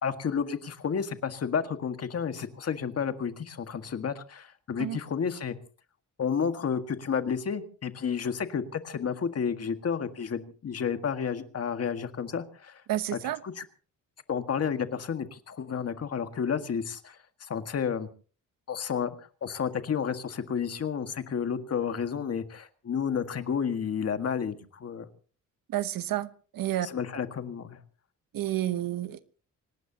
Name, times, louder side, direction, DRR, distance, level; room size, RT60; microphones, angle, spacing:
voice 1, 0.0-5.6 6.2-12.8 13.4-13.5 14.3-18.1 18.7-19.2 19.4-25.1 26.8-27.8, left 7 dB, 45° left, 1.8 m, -31 dB
voice 2, 12.9-13.4 25.7-26.9 28.3-29.4, right 13 dB, 85° right, 1.2 m, -30 dB
25.0 x 19.0 x 2.9 m
wide cardioid pair, 145°, 33 cm